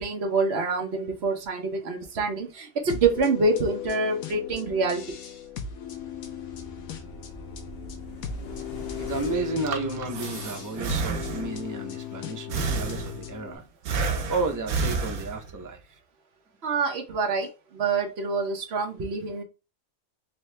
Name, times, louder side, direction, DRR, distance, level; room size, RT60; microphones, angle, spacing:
voice 1, 0.0-5.0 16.6-19.4, right 3 dB, 50° right, 1.1 m, -26 dB
sound 1, 2.9-13.6, left 9 dB, 75° left, 1.1 m, -38 dB
sound 2, 5.4-10.7 11.0-11.1, equal, 50° left, 0.9 m, -43 dB
voice 2, 9.0-13.6 14.3-15.8, right 3 dB, 30° right, 0.3 m, -32 dB
Breathing, 9.4-11.7 12.5-13.4 13.9-15.7, right 4 dB, 80° right, 1.2 m, -30 dB
4.3 x 2.7 x 3.3 m
omnidirectional pair, 1.5 m